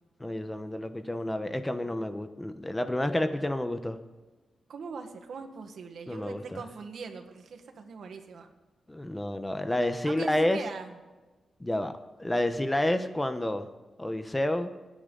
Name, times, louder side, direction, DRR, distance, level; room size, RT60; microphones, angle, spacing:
voice 1, 0.2-4.0 6.1-6.6 8.9-10.6 11.6-11.9 12.2-13.7 14.0-14.7, left 1 dB, 10° left, 8 dB, 1.0 m, -29 dB
voice 2, 4.7-8.5 10.0-11.0, right 5 dB, 75° right, 5 dB, 1.7 m, -41 dB
27.0 x 10.0 x 4.0 m, 1.2 s
wide cardioid pair, 115°, 0 cm